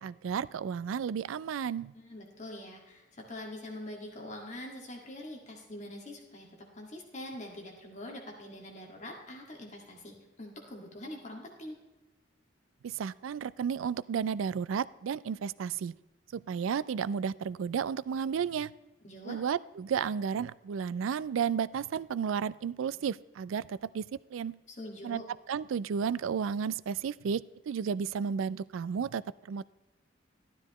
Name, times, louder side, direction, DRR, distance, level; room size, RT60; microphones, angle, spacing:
voice 1, 0.0-1.9 12.8-16.0 16.3-18.7 19.2-24.6 25.0-25.2 25.5-29.6, right 7 dB, 85° right, 20 dB, 0.3 m, -33 dB
voice 2, 1.9-11.8 19.0-19.4 24.7-25.2, left 1 dB, 35° left, 0 dB, 1.9 m, -44 dB
13.0 x 12.0 x 3.0 m, 1.1 s
head